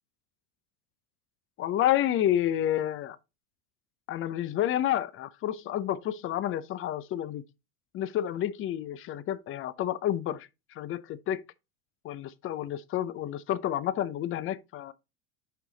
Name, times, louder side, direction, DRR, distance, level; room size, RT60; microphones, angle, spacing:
voice 1, 1.6-3.2 4.1-7.4 7.9-10.5 10.8-11.4 12.0-14.9, left 11 dB, 30° left, 0.5 m, -29 dB
6.7 x 4.7 x 3.9 m
supercardioid pair, 110°, 47 cm